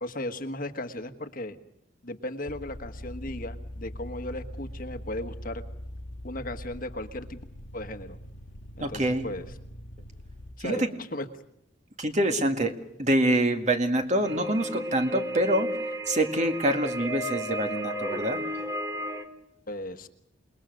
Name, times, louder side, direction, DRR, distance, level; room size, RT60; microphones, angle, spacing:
voice 1, 0.0-1.6 2.0-5.6 6.2-7.4 7.7-8.2 8.8-9.5 10.6-11.3 19.7-20.1, left 1 dB, 45° left, 7 dB, 1.5 m, -36 dB
sound 1, 2.5-10.5, left 1 dB, 70° left, 1.6 m, -42 dB
voice 2, 8.8-9.3 10.6-10.9 12.0-12.7 13.0-15.7 16.1-18.4, right 1 dB, 35° right, 6 dB, 2.0 m, -25 dB
sound 2, 14.2-19.2, equal, 15° right, 2.6 m, -33 dB
28.5 x 20.5 x 6.5 m, 0.75 s
head